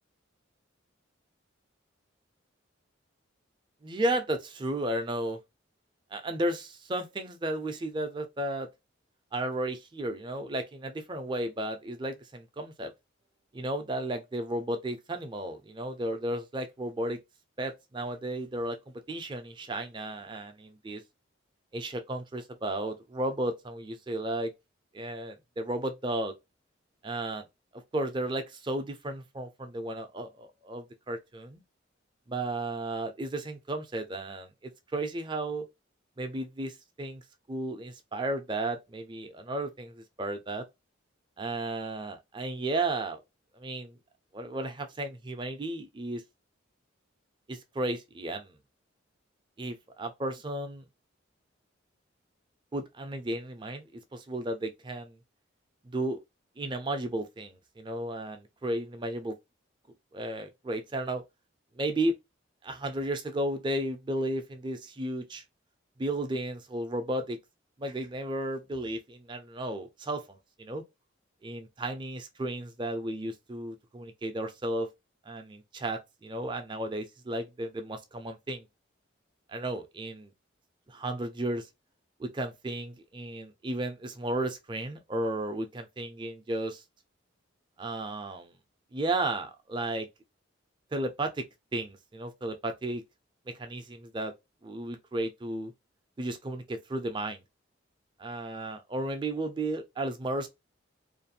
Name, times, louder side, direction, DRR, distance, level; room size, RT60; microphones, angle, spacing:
voice 1, 3.8-5.4 6.1-8.7 9.3-12.9 13.5-17.2 17.6-18.8 19.1-21.0 21.7-24.5 24.9-26.3 27.0-27.4 27.7-31.6 32.3-35.7 36.2-37.2 37.5-40.7 41.4-43.2 43.5-44.0 44.3-46.2 47.5-48.6 49.6-50.8 52.7-55.2 55.9-56.2 56.6-59.4 60.1-61.2 61.7-62.2 62.6-65.4 66.0-67.4 67.8-70.8 71.4-74.9 75.3-78.7 79.5-80.3 80.9-81.7 82.2-86.8 87.8-88.6 88.9-90.1 90.9-91.4 91.7-93.0 93.5-94.3 94.6-95.7 96.2-97.4 98.2-100.5, right 1 dB, 25° right, 0.4 m, -34 dB
2.5 x 2.3 x 2.7 m
head